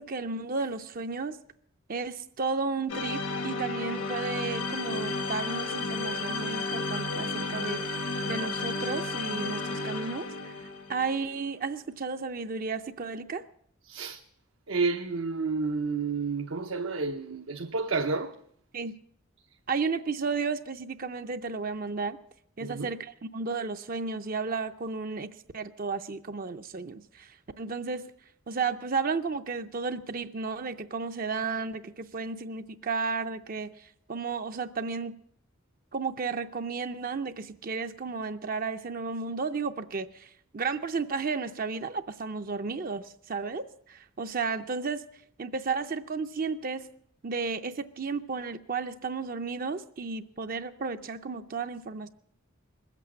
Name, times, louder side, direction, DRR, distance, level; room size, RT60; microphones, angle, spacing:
voice 1, 0.0-1.4 1.9-7.8 8.3-10.6 10.9-13.4 18.7-19.0 19.7-22.2 22.6-28.1 28.5-35.2 35.9-45.0 45.4-46.9 47.2-52.1, right 4 dB, 45° right, 0.5 m, -33 dB
sound 1, 2.9-11.3, left 3 dB, 70° left, 1.3 m, -33 dB
voice 2, 13.9-14.2 14.7-18.3 22.6-22.9, right 4 dB, 75° right, 0.8 m, -30 dB
20.5 x 8.3 x 8.5 m
head